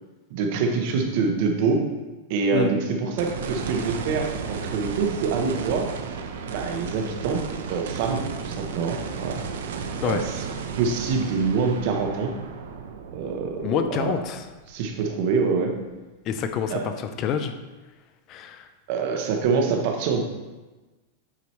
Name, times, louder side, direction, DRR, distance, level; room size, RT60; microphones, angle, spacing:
voice 1, 0.3-1.8 2.3-5.9 6.5-7.4 7.7-9.4 10.0-10.4 10.7-12.3 13.1-14.1 14.7-15.7 16.7-16.9 18.9-20.2, right 5 dB, 40° right, 3 dB, 0.8 m, -25 dB
sound 1, 3.2-15.5 16.0-16.1 19.4-19.5, right 5 dB, 75° right, 0.6 m, -34 dB
voice 2, 13.6-14.5 16.3-17.5 18.3-18.7, left 7 dB, 25° left, 8 dB, 0.4 m, -27 dB
8.4 x 4.7 x 3.1 m, 1.2 s
supercardioid pair, 180°, 0 cm